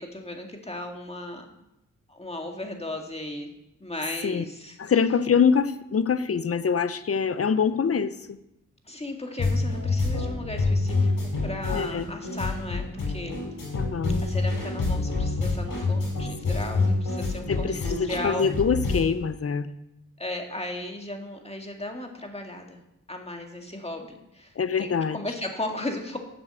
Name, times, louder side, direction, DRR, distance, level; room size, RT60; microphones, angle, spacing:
voice 1, 0.0-1.6 2.1-3.5 3.8-4.8 8.9-13.4 14.2-18.5 20.2-22.8 23.1-24.5 24.8-26.2, left 1 dB, 20° left, 3 dB, 2.0 m, -36 dB
voice 2, 4.8-8.4 11.7-12.0 13.7-14.2 17.5-19.7 24.6-25.2, left 6 dB, 45° left, 14 dB, 0.7 m, -24 dB
sound 1, 9.4-19.0, left 3 dB, 80° left, 4.4 m, -27 dB
7.8 x 6.0 x 7.9 m, 0.85 s
cardioid pair, 50°, 33 cm